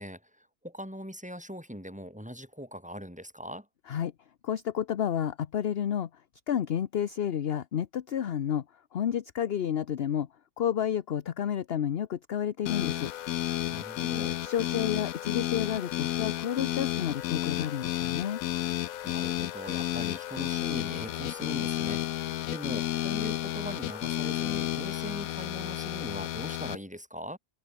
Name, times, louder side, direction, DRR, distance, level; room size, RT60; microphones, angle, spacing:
voice 1, 0.0-3.7 13.7-14.4 19.0-27.4, equal, 5° right, 6.3 m, -41 dB
voice 2, 4.4-6.1 6.5-8.6 8.9-10.3 10.6-13.1 14.4-18.4, left 9 dB, 50° left, 0.9 m, -30 dB
sound 1, 12.7-26.8, left 13 dB, 75° left, 1.1 m, -32 dB
open air
omnidirectional pair, 1.5 m